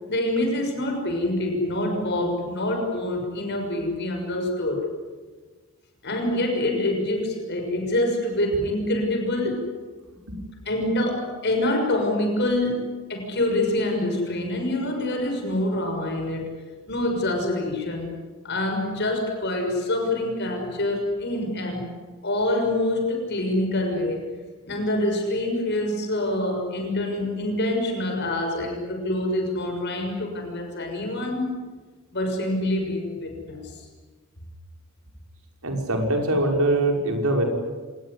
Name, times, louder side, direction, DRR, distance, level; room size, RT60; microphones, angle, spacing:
voice 1, 0.1-4.9 6.0-9.7 10.6-16.6 16.9-18.1 18.4-21.9 22.2-24.3 24.6-31.6 32.1-33.9, left 1 dB, 50° left, 3 dB, 6.3 m, -26 dB
voice 2, 35.6-37.4, right 2 dB, 80° right, 2 dB, 5.6 m, -23 dB
26.5 x 20.0 x 9.9 m, 1.3 s
head